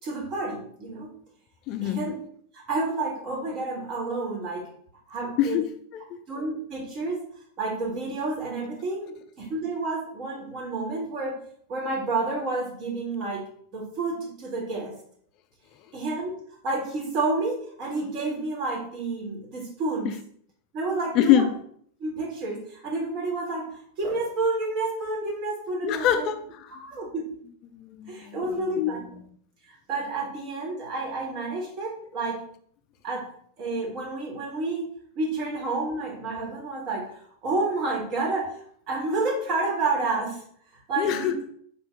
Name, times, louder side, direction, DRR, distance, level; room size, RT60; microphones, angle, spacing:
voice 1, 0.0-1.1 1.8-2.1 2.5-4.6 5.1-5.5 6.3-7.2 7.6-11.4 11.7-13.4 13.7-14.9 15.9-16.3 16.6-20.1 20.7-21.5 22.0-26.3 26.8-27.2 28.1-29.0 29.7-32.4 33.0-33.2 33.6-34.9 35.1-40.4 40.9-41.3, right 3 dB, 40° right, -2 dB, 1.6 m, -30 dB
voice 2, 1.7-2.1 5.4-5.6 6.1-6.2 20.0-20.2 21.1-21.5 25.8-26.8 27.7-29.1 41.0-41.5, left 10 dB, 40° left, 9 dB, 0.3 m, -25 dB
4.4 x 2.8 x 3.3 m, 0.62 s
figure-of-eight pair, 90°, 0 cm